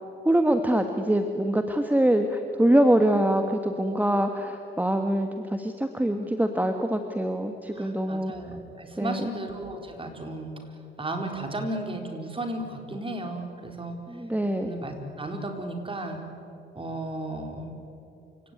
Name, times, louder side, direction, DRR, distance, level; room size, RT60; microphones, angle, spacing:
voice 1, 0.2-8.3 9.0-9.3 14.1-14.7, right 1 dB, 10° right, 6 dB, 1.6 m, -24 dB
voice 2, 7.7-10.5 11.0-14.0 14.6-16.2 16.7-17.7, right 1 dB, 25° right, 4 dB, 4.7 m, -34 dB
28.5 x 18.0 x 9.4 m, 2.8 s
cardioid pair, 90°, 20 cm